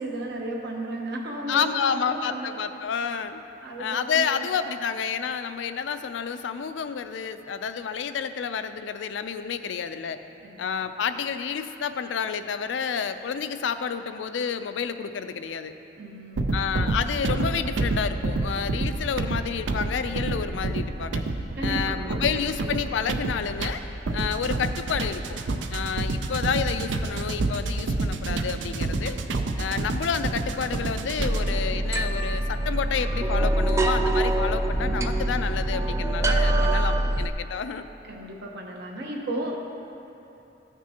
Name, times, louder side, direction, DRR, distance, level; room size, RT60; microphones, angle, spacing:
voice 1, 0.0-2.5 3.6-4.5 10.4-11.0 16.0-16.6 21.5-22.2 38.1-39.6, right 1 dB, 60° right, -1 dB, 1.0 m, -34 dB
voice 2, 1.5-3.4 3.8-10.2 10.6-15.7 16.5-21.2 21.6-23.8 24.1-25.2 25.7-29.2 29.6-37.9, left 6 dB, 80° left, 10 dB, 0.4 m, -29 dB
sound 1, 16.4-31.6, right 2 dB, 75° right, 0.5 m, -29 dB
sound 2, 31.2-37.3, right 1 dB, 15° right, 0.3 m, -24 dB
14.5 x 6.0 x 2.9 m, 2.9 s
head